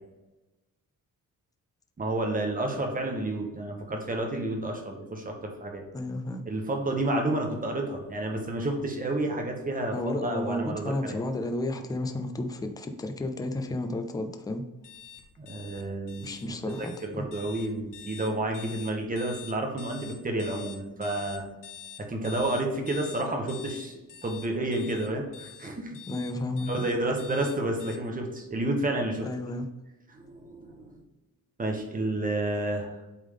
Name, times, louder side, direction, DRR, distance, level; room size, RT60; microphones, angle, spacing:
voice 1, 2.0-5.9 6.5-11.2 15.4-21.4 22.0-26.2 26.7-29.3 30.1-31.0 31.6-32.9, right 1 dB, 25° right, 2 dB, 1.1 m, -30 dB
voice 2, 5.9-6.4 9.9-14.7 16.2-17.2 26.1-26.9 29.2-29.7, left 1 dB, 10° left, 7 dB, 0.4 m, -32 dB
sound 1, 14.8-28.0, left 9 dB, 70° left, 0.8 m, -46 dB
8.3 x 3.6 x 3.7 m, 1.1 s
wide cardioid pair, 170°, 34 cm